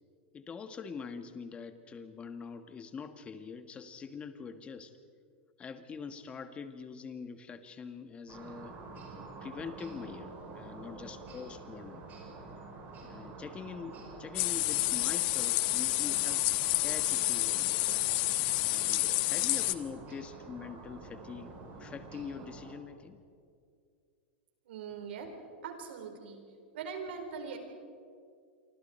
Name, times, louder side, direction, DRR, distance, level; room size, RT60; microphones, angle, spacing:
voice 1, 0.3-4.9 5.6-8.8 9.4-12.1 13.0-17.8 18.6-23.2, left 6 dB, 20° left, 9 dB, 1.5 m, -44 dB
sound 1, 8.3-22.7, right 3 dB, 30° right, 6.5 m, -47 dB
sound 2, 14.4-19.8, left 19 dB, 50° left, 1.1 m, -29 dB
voice 2, 24.6-25.3 25.6-26.4 26.7-27.6, right 6 dB, 75° right, 4 dB, 4.5 m, -41 dB
28.0 x 25.0 x 4.5 m, 2.3 s
supercardioid pair, 135°, 6 cm